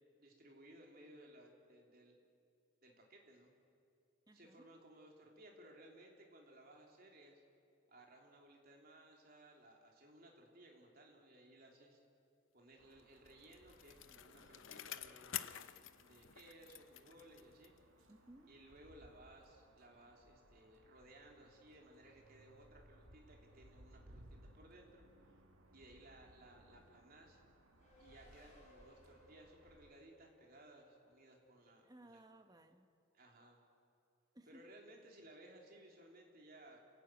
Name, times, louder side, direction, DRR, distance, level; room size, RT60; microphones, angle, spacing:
voice 1, 0.2-2.2 2.8-3.5 4.3-7.4 7.9-12.0 12.5-15.7 16.0-17.7 18.5-25.0 25.7-27.4 28.0-32.2 33.1-33.6 34.5-36.8, right 1 dB, 45° right, 0 dB, 3.6 m, -61 dB
voice 2, 4.3-4.7 18.1-18.5 31.8-32.9 34.3-34.7, right 1 dB, 20° right, 6 dB, 1.2 m, -61 dB
sound 1, 12.8-29.9, right 1 dB, 80° right, 2.1 m, -65 dB
Bicycle, 13.0-17.9 18.3-18.4, left 11 dB, 65° left, 0.8 m, -50 dB
Race car auto racing, 27.8-32.7, equal, 35° left, 6.1 m, -67 dB
28.5 x 16.5 x 9.3 m, 2.5 s
head